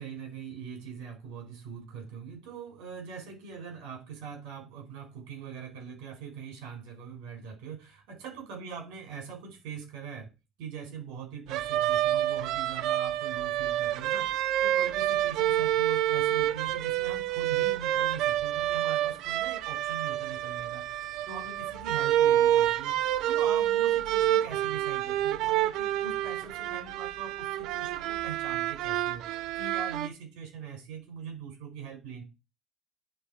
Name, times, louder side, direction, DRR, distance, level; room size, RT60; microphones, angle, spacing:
voice 1, 0.0-10.3 10.6-32.2, right 6 dB, 90° right, 2 dB, 4.9 m, -42 dB
sound 1, 11.5-30.1, right 12 dB, 70° right, 0.5 m, -28 dB
9.9 x 4.2 x 4.3 m, 0.27 s
cardioid pair, 125°, 0 cm